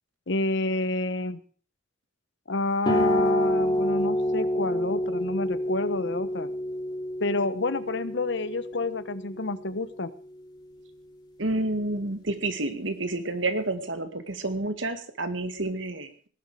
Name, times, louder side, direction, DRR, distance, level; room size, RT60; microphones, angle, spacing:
voice 1, 0.3-1.4 2.5-6.5 7.2-10.1, left 2 dB, 65° left, 14 dB, 1.1 m, -29 dB
sound 1, 2.8-10.0, equal, 25° left, 2.7 m, -28 dB
voice 2, 11.4-16.3, right 2 dB, 75° right, 9 dB, 2.0 m, -29 dB
18.5 x 11.0 x 4.9 m, 0.42 s
head